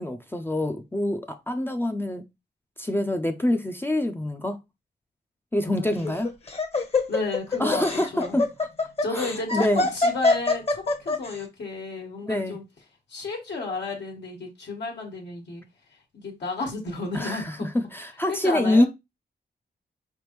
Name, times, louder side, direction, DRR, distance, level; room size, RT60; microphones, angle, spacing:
voice 1, 0.0-2.2 2.8-4.6 5.5-6.3 7.6-8.5 9.1-9.9 12.3-12.6 17.1-18.9, left 1 dB, 10° left, 0.4 m, -25 dB
voice 2, 5.6-6.1 7.1-8.4 9.0-12.6 13.1-15.6 16.1-17.7 18.3-18.9, left 3 dB, 80° left, 1.5 m, -32 dB
Laughter, 5.9-11.3, left 3 dB, 35° left, 0.9 m, -24 dB
4.9 x 3.4 x 3.0 m
wide cardioid pair, 140°, 18 cm